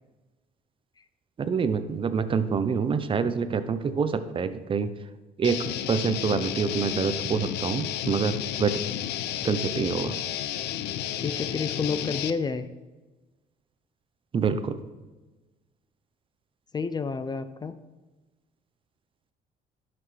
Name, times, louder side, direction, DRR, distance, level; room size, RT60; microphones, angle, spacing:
voice 1, 1.4-4.9 5.4-8.3 8.6-8.8 9.4-10.2 14.3-14.8, right 5 dB, 30° right, 11 dB, 0.7 m, -26 dB
Guitar, 5.4-12.3, left 11 dB, 75° left, 0.5 m, -32 dB
voice 2, 11.2-12.7 16.7-17.8, left 5 dB, 25° left, 12 dB, 0.4 m, -29 dB
11.5 x 6.0 x 3.3 m, 1.2 s
cardioid pair, 110°, 17 cm